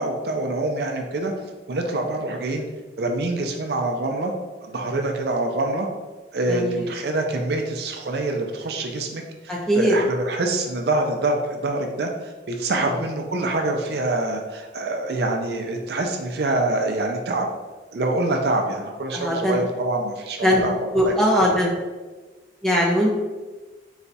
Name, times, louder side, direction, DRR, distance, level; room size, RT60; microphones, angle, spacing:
voice 1, 0.0-1.3 1.7-2.7 3.0-4.3 4.6-5.9 6.3-17.5 17.9-20.7 21.0-21.1, right 2 dB, 60° right, 3 dB, 0.4 m, -25 dB
voice 2, 6.5-6.9 9.5-10.0 12.8-12.9 19.1-19.6 20.4-20.6 20.9-21.7 22.6-23.1, equal, 5° left, -3 dB, 0.6 m, -20 dB
4.0 x 2.3 x 4.0 m, 1.2 s
head